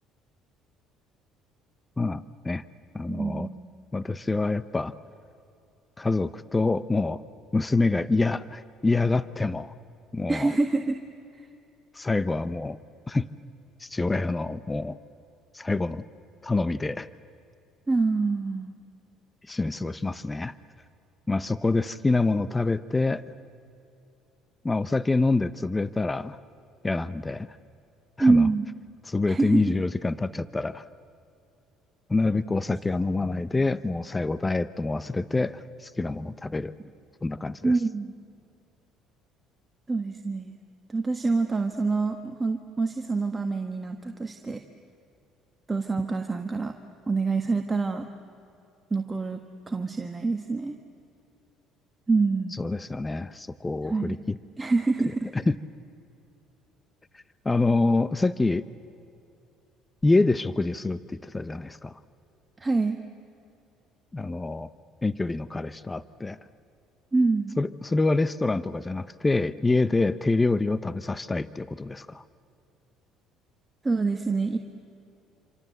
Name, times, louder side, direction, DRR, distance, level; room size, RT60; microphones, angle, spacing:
voice 1, 2.0-2.6 2.9-3.5 3.9-4.9 6.0-7.2 7.5-9.7 10.1-10.5 11.9-12.8 13.1-13.3 13.8-15.0 15.5-16.0 16.4-17.1 19.5-20.5 21.3-23.2 24.6-26.4 26.8-27.5 28.2-28.5 29.1-30.8 32.1-36.7 37.2-37.7 52.6-54.4 55.5-55.6 57.4-58.6 60.0-61.9 64.1-64.7 65.0-66.4 67.6-72.2, left 3 dB, 20° left, 16 dB, 0.7 m, -26 dB
voice 2, 3.1-3.7 10.3-11.0 11.3-11.4 17.9-18.7 28.2-28.7 29.3-29.6 35.0-35.3 37.6-38.1 39.9-40.5 40.9-44.6 45.7-46.7 47.1-48.0 48.9-50.7 52.1-52.6 53.8-54.2 54.6-55.3 62.6-63.0 67.1-67.5 73.8-74.6, right 3 dB, 20° right, 5 dB, 1.5 m, -26 dB
27.0 x 26.5 x 7.9 m, 2.7 s
supercardioid pair, 80°, 0 cm